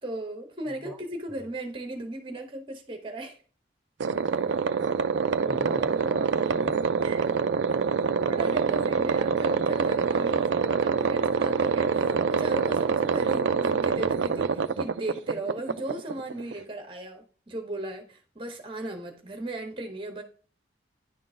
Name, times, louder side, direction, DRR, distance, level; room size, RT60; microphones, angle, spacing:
voice 1, 0.0-3.4 7.0-7.3 8.1-20.2, right 1 dB, 25° right, 1.2 m, -37 dB
sound 1, 4.0-16.6, right 5 dB, 70° right, 0.4 m, -25 dB
voice 2, 5.5-6.9, equal, 5° right, 0.5 m, -41 dB
10.5 x 3.8 x 2.5 m
head